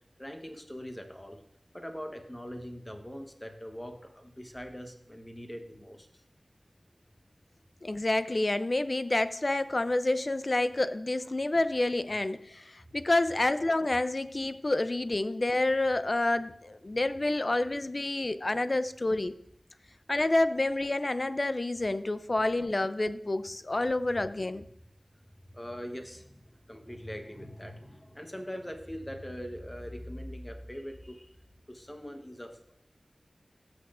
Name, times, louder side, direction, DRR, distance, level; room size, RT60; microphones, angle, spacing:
voice 1, 0.2-1.4 1.7-6.1 12.8-12.9 25.5-31.3 31.7-32.7, equal, 15° left, 4 dB, 1.0 m, -42 dB
voice 2, 7.8-19.3 20.1-24.6, left 2 dB, 45° left, 13 dB, 0.4 m, -28 dB
15.0 x 6.0 x 2.5 m, 0.71 s
wide cardioid pair, 70°, 0 cm